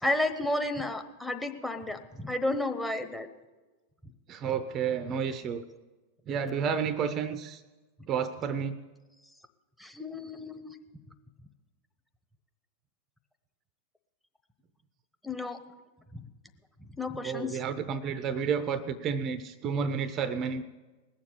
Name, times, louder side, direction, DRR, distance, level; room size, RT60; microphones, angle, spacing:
voice 1, 0.0-3.3 9.8-10.8 15.2-15.6 16.1-16.2 17.0-17.6, left 2 dB, 5° left, 5 dB, 1.1 m, -32 dB
voice 2, 4.3-5.6 6.3-7.6 8.1-8.8 17.2-20.6, right 6 dB, 30° right, 14 dB, 0.7 m, -31 dB
19.5 x 7.2 x 8.4 m, 1.2 s
figure-of-eight pair, 90°, 0 cm